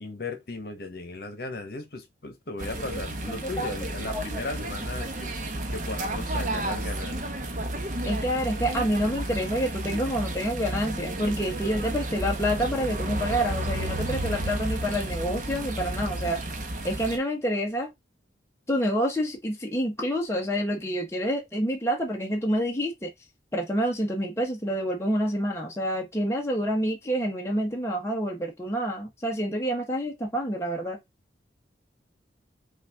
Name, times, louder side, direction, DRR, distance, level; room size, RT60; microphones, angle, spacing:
voice 1, 0.0-5.3 5.7-7.3, left 2 dB, 60° left, 1.1 m, -36 dB
sound 1, 2.6-17.2, right 1 dB, 45° right, 0.8 m, -32 dB
voice 2, 3.3-3.7 4.1-4.2 8.0-16.4 16.8-17.9 18.7-23.1 23.5-31.0, equal, 15° left, 0.9 m, -28 dB
5.5 x 2.5 x 3.5 m
head